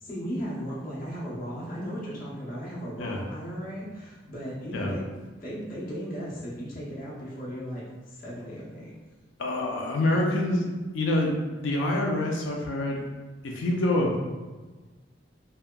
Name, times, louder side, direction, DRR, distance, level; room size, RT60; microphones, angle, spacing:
voice 1, 0.0-5.0 5.4-8.9, equal, 50° left, -6 dB, 0.7 m, -36 dB
voice 2, 9.4-10.7 10.9-11.3 11.6-13.0 13.4-14.2, left 1 dB, 80° left, 0 dB, 0.4 m, -26 dB
2.8 x 2.2 x 2.2 m, 1.3 s
head